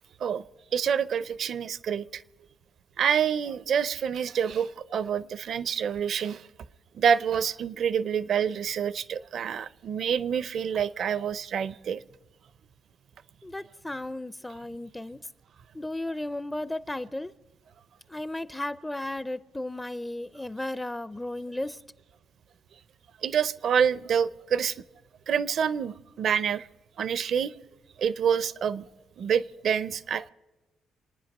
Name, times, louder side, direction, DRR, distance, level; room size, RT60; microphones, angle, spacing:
voice 1, 0.7-2.2 3.0-6.4 6.9-12.0 23.2-24.7 25.3-26.7 27.0-27.5 28.0-28.9 29.2-30.3, right 7 dB, 60° right, 0.6 m, -27 dB
voice 2, 13.4-15.2 15.7-17.3 18.1-21.8, left 1 dB, 10° left, 0.4 m, -34 dB
27.5 x 9.7 x 5.3 m
cardioid pair, 90°, 0 cm